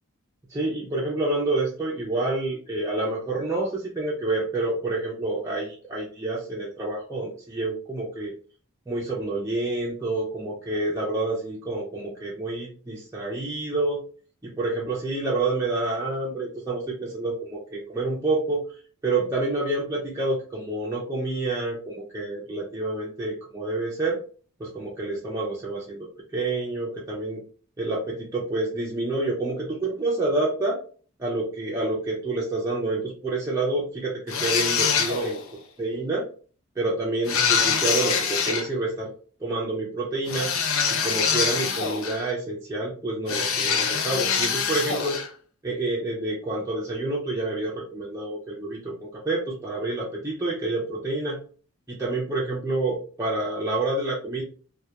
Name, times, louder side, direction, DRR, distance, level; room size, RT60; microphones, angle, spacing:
voice 1, 0.5-8.3 8.9-14.0 14.4-18.6 19.0-24.2 24.6-26.0 26.3-27.4 27.8-30.8 31.2-35.4 35.8-36.2 36.8-39.1 39.4-40.5 40.9-45.2 45.6-51.4 51.9-54.4, right 2 dB, 15° right, -5 dB, 0.4 m, -28 dB
sound 1, 34.3-35.5 37.3-38.7 40.3-42.3 43.3-45.3, left 6 dB, 65° left, 0.4 m, -24 dB
2.2 x 2.2 x 2.8 m, 0.41 s
head